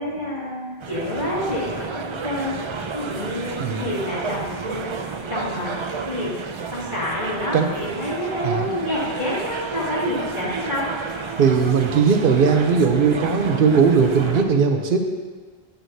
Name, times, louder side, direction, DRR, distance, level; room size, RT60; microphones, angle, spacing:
voice 1, 0.0-2.6 2.9-4.9 5.3-5.8 6.0-6.3 6.7-10.9, equal, 50° left, -7 dB, 2.5 m, -28 dB
sound 1, 0.8-14.4, right 4 dB, 45° right, 0.4 m, -31 dB
voice 2, 11.4-15.0, right 5 dB, 60° right, 5 dB, 0.9 m, -18 dB
9.1 x 8.5 x 2.8 m, 1.5 s
omnidirectional pair, 1.1 m